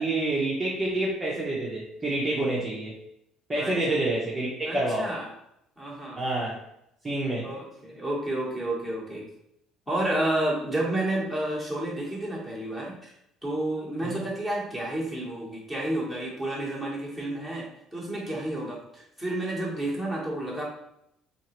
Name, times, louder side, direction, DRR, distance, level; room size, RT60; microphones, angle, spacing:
voice 1, 0.0-2.9 3.5-5.1 6.2-6.6 7.0-7.5 14.0-14.2, right 2 dB, 15° right, -6 dB, 0.7 m, -28 dB
voice 2, 3.5-3.9 4.7-5.3 5.8-6.2 7.4-9.3 9.9-13.1 13.4-20.6, right 1 dB, 5° left, -4 dB, 1.1 m, -30 dB
4.5 x 2.8 x 3.0 m, 0.78 s
cardioid pair, 170°, 0 cm